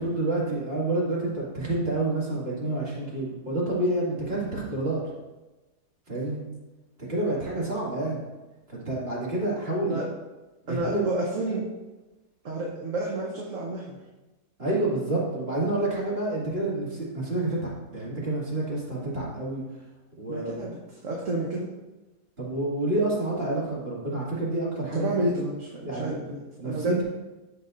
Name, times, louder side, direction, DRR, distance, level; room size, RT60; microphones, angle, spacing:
voice 1, 0.0-5.0 6.1-6.4 7.1-8.2 8.7-10.0 10.7-11.0 14.6-19.6 20.2-20.6 22.4-25.1 25.8-26.1 26.6-27.0, right 2 dB, 40° right, -5 dB, 2.5 m, -28 dB
voice 2, 10.7-11.6 12.4-14.0 20.3-21.7 24.9-27.0, right 2 dB, 55° right, -3 dB, 1.4 m, -30 dB
14.0 x 5.4 x 2.6 m, 1.1 s
omnidirectional pair, 1.7 m